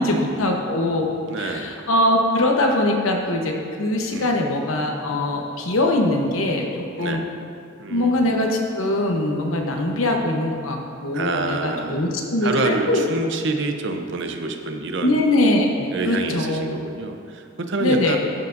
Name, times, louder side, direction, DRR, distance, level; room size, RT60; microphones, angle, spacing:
voice 1, 0.0-1.1 1.4-7.2 7.9-13.0 15.0-16.6 17.8-18.2, left 1 dB, 85° left, 2 dB, 1.0 m, -22 dB
voice 2, 1.3-1.7 4.1-4.4 7.0-7.3 7.8-8.3 11.1-12.0 12.4-15.2 15.9-18.2, right 3 dB, 60° right, 5 dB, 0.6 m, -27 dB
14.0 x 5.8 x 2.6 m, 2.5 s
head